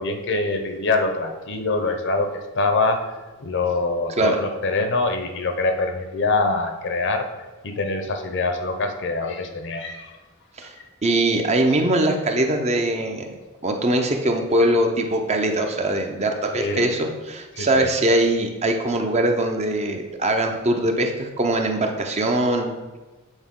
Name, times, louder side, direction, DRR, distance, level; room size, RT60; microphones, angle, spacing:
voice 1, 0.0-2.3 2.5-3.0 3.4-7.2 7.6-10.1 16.5-16.8 17.5-17.9, left 3 dB, 55° left, 5 dB, 0.7 m, -24 dB
voice 2, 11.0-13.3 13.6-22.7, right 1 dB, 30° right, 4 dB, 0.6 m, -22 dB
8.1 x 4.4 x 3.7 m, 1.2 s
head